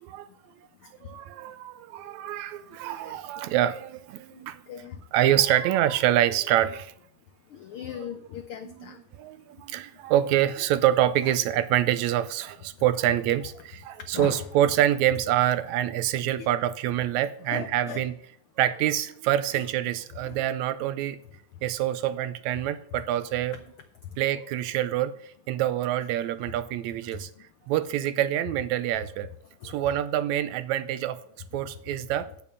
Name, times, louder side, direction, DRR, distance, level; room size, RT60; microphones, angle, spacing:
voice 1, 1.0-4.6 5.1-6.9 9.2-18.1 18.6-21.2 21.6-23.6 24.2-25.1 25.5-27.3 27.7-29.3 29.6-31.2 31.5-32.3, right 12 dB, 80° right, 13 dB, 1.9 m, -26 dB
voice 2, 4.3-5.0 7.5-9.0 14.1-14.5 16.4-16.5 17.5-18.1 19.5-19.7 20.2-20.4 27.1-27.2 29.6-30.0, left 9 dB, 90° left, 8 dB, 1.1 m, -39 dB
8.8 x 7.1 x 6.6 m, 0.65 s
omnidirectional pair, 3.4 m